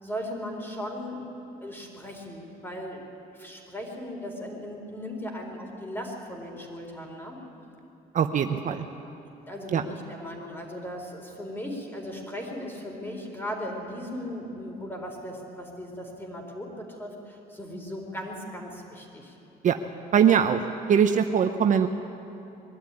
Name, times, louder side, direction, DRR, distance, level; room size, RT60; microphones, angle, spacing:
voice 1, 0.0-1.3 1.6-3.0 3.3-7.4 9.5-19.4, equal, 15° left, 1 dB, 4.3 m, -37 dB
voice 2, 8.1-8.8 9.7-9.8 19.6-19.8 20.1-20.6 20.9-21.9, right 8 dB, 50° right, 7 dB, 0.9 m, -21 dB
22.0 x 12.5 x 9.9 m, 2.9 s
cardioid pair, 110°, 17 cm